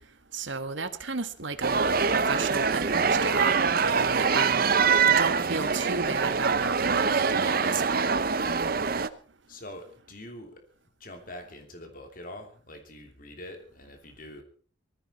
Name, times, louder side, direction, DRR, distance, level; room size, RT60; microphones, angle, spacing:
voice 1, 0.3-3.6 3.8-4.6 5.2-8.0, right 4 dB, 70° right, 10 dB, 1.5 m, -33 dB
sound 1, 1.6-9.1, right 5 dB, 45° right, 0.8 m, -24 dB
voice 2, 8.4-9.0 9.5-10.6 11.0-14.4, left 1 dB, 45° left, 5 dB, 3.0 m, -44 dB
19.0 x 14.5 x 4.4 m, 0.43 s
head